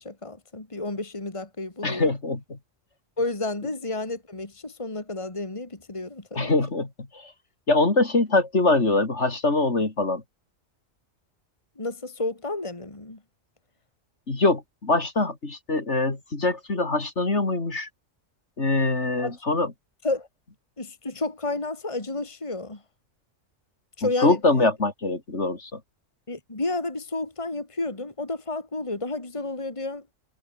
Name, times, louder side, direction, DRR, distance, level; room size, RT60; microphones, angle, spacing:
voice 1, 0.0-2.1 3.2-6.5 11.8-13.2 19.2-19.4 20.0-20.3 20.8-22.8 24.0-24.7 26.3-30.0, left 2 dB, 25° left, 2.5 m, -31 dB
voice 2, 1.8-2.6 6.4-6.9 7.2-7.3 7.7-10.2 14.3-17.9 18.6-19.7 24.0-25.8, left 2 dB, 60° left, 3.7 m, -23 dB
omnidirectional pair, 1.3 m